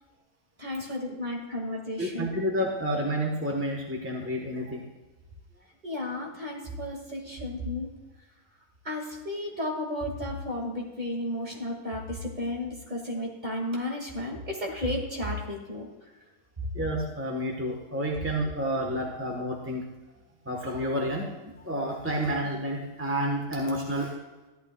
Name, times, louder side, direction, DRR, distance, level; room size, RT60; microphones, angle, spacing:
voice 1, 0.6-2.3 5.8-7.9 8.8-15.9, left 1 dB, 30° right, -1 dB, 2.2 m, -33 dB
voice 2, 2.0-4.8 16.7-19.8 20.5-24.1, equal, 10° right, 0 dB, 1.1 m, -30 dB
13.5 x 11.5 x 2.3 m, 1.2 s
omnidirectional pair, 1.4 m